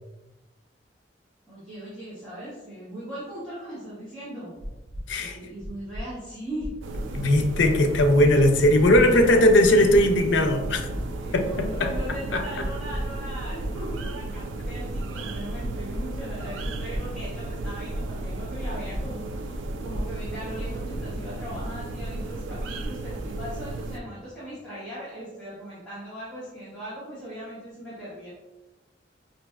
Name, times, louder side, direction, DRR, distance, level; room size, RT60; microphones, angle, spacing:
voice 1, 1.5-4.5 5.2-6.7 11.2-19.5 19.8-28.3, equal, 5° left, -12 dB, 1.2 m, -39 dB
sound 1, 4.6-5.0 5.6-6.0 6.6-7.0 7.6-8.0 8.6-9.0 9.6-10.0 10.6-11.0 11.6-12.0 12.6-13.0 13.6-14.0 14.6-15.0 15.6-16.0 16.6-17.0 17.6-18.0 18.6-19.0 19.6-20.0 20.6-21.0 21.6-21.9, equal, 45° left, 1.2 m, -35 dB
sound 2, 6.8-24.0, right 2 dB, 85° right, 0.4 m, -34 dB
voice 2, 7.1-10.9 11.3-11.9 12.3-12.4, left 1 dB, 80° left, 5 dB, 0.5 m, -19 dB
5.0 x 2.7 x 2.3 m, 1.1 s
head